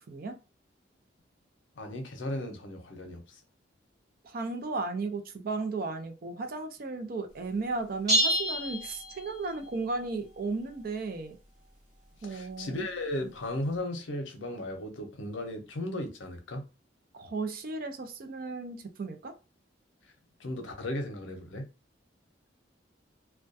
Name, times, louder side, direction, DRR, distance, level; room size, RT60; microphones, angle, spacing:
voice 1, 1.8-3.4 12.2-16.6 20.4-21.6, left 1 dB, 85° left, 0.6 m, -36 dB
voice 2, 4.2-11.4 12.2-12.9 17.1-19.3, right 3 dB, 50° right, 0.4 m, -35 dB
sound 1, 8.1-9.7, right 1 dB, 20° right, 1.1 m, -28 dB
2.2 x 2.2 x 2.5 m
head